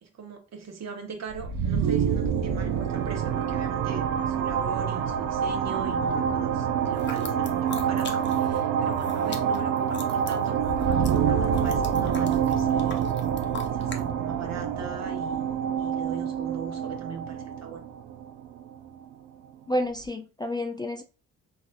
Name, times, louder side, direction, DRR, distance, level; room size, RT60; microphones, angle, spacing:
voice 1, 0.0-13.1 13.7-17.8, right 4 dB, 55° right, 0.9 m, -40 dB
sound 1, 1.3-19.0, right 8 dB, 75° right, 0.5 m, -26 dB
sound 2, 6.9-8.6 8.9-14.0, left 4 dB, 35° left, 0.8 m, -41 dB
voice 2, 19.7-21.0, left 1 dB, 15° left, 0.4 m, -29 dB
4.0 x 2.4 x 2.4 m
supercardioid pair, 60°, 32 cm